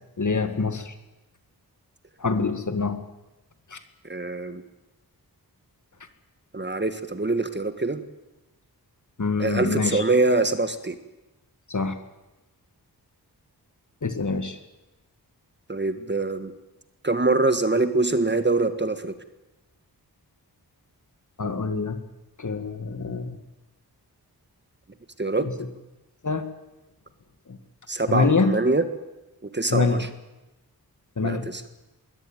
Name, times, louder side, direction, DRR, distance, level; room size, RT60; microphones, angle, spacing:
voice 1, 0.2-0.9 2.2-3.0 3.7-3.8 9.2-10.0 11.7-12.0 14.0-14.6 21.4-22.0 22.4-23.4 26.2-26.4 27.5-27.6 28.1-28.5 29.7-30.0 31.2-31.5, left 4 dB, 50° left, 9 dB, 2.2 m, -25 dB
voice 2, 4.0-4.6 6.5-8.0 9.4-11.0 15.7-16.5 17.0-19.1 25.2-25.5 27.9-28.9 29.4-30.1 31.2-31.6, right 2 dB, 25° right, 10 dB, 1.6 m, -24 dB
22.0 x 17.5 x 9.2 m, 1.0 s
wide cardioid pair, 75°, 39 cm